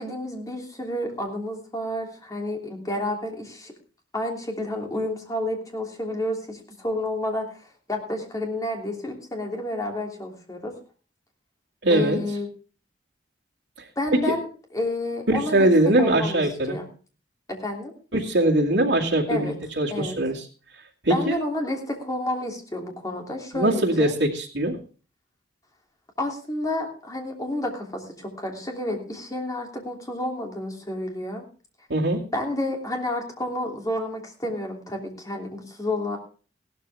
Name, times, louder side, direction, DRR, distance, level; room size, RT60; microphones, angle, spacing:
voice 1, 0.0-3.7 4.1-7.6 7.9-10.7 11.9-12.5 14.0-15.7 16.0-16.9 17.5-17.9 19.3-19.5 19.9-20.2 21.1-24.1 26.2-31.4 32.3-36.2, left 1 dB, 20° left, 2 dB, 3.1 m, -30 dB
voice 2, 11.8-12.2 14.1-14.2 15.3-16.8 18.1-20.4 21.0-21.4 23.5-24.8 31.9-32.2, right 1 dB, 80° right, -2 dB, 2.4 m, -21 dB
16.0 x 12.5 x 3.5 m, 0.37 s
head